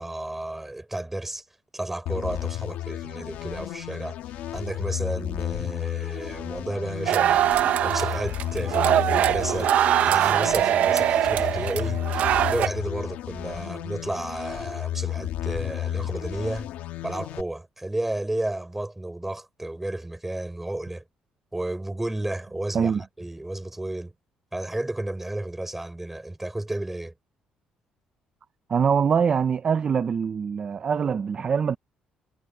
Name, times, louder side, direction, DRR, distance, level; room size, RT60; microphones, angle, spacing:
voice 1, 0.0-1.4 1.7-4.2 4.5-9.7 10.1-12.0 12.5-16.7 17.0-21.0 21.5-24.1 24.5-27.1, right 1 dB, 10° right, 5.7 m, -32 dB
sound 1, 2.1-17.4, left 13 dB, 85° left, 1.7 m, -33 dB
sound 2, 7.0-12.7, right 11 dB, 65° right, 0.9 m, -22 dB
voice 2, 28.7-31.8, right 6 dB, 40° right, 0.6 m, -23 dB
cardioid pair, 115°, 3 cm